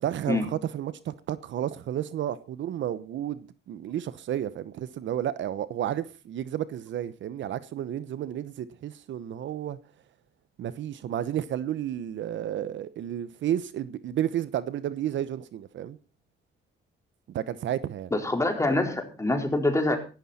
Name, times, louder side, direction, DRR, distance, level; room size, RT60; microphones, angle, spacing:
voice 1, 0.0-9.8 10.6-16.0 17.3-18.1, right 11 dB, 70° right, 1.0 m, -32 dB
voice 2, 18.1-20.0, left 2 dB, 15° left, 4.4 m, -25 dB
17.5 x 13.0 x 4.3 m
cardioid pair, 90°, 20 cm